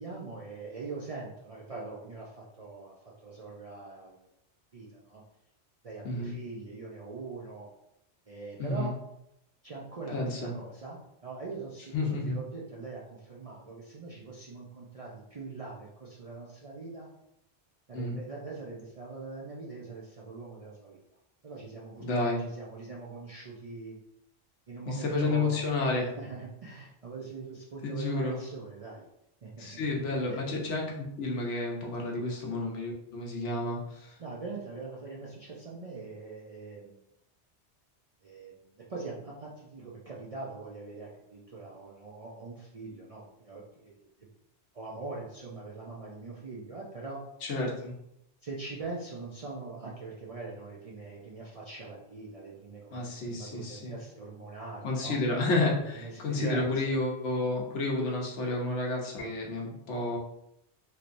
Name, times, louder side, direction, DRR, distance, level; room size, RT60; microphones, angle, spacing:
voice 1, 0.0-4.2 4.7-5.2 5.8-7.7 8.3-8.9 9.6-17.1 17.9-21.0 21.4-22.0 22.4-24.0 24.7-25.6 26.2-29.1 29.4-29.9 30.3-30.4 32.3-32.4 34.2-37.0 38.2-44.1 44.7-47.2 48.4-55.2 55.9-57.0, right 3 dB, 50° right, -4 dB, 0.4 m, -42 dB
voice 2, 8.6-8.9 10.1-10.5 11.9-12.4 17.9-18.1 22.0-22.4 24.9-26.1 27.8-28.4 29.6-34.2 47.4-47.9 52.9-54.0 54.8-60.2, left 2 dB, 85° left, -1 dB, 1.1 m, -31 dB
3.2 x 2.8 x 2.5 m, 0.80 s
omnidirectional pair, 1.2 m